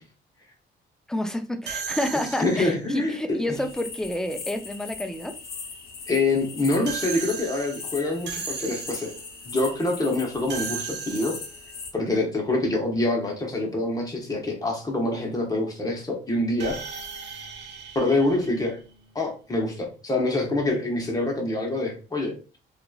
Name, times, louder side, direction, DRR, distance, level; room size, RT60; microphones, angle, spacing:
voice 1, 1.1-5.4, left 1 dB, 5° left, 6 dB, 0.4 m, -29 dB
sound 1, 1.7-2.9 6.9-9.4 10.5-11.8 16.6-19.1, right 6 dB, 60° right, 0.5 m, -36 dB
voice 2, 2.4-3.6 6.1-9.1 9.4-11.4 11.9-16.8 17.9-18.8 19.1-22.6, left 2 dB, 20° left, 0 dB, 1.0 m, -26 dB
sound 2, 3.5-11.9, left 5 dB, 50° left, 0.7 m, -40 dB
2.8 x 2.4 x 2.3 m, 0.35 s
cardioid pair, 90°, 20 cm